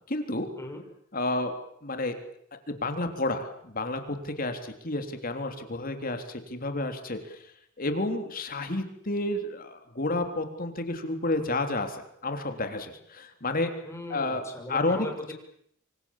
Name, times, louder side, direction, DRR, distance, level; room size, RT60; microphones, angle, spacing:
voice 1, 0.1-0.5 1.1-1.5 1.8-2.2 2.7-7.4 7.8-13.7 14.1-15.1, left 2 dB, 45° left, 6 dB, 3.5 m, -30 dB
voice 2, 13.8-15.3, left 1 dB, 15° left, 3 dB, 5.9 m, -38 dB
26.0 x 26.0 x 7.4 m, 0.69 s
head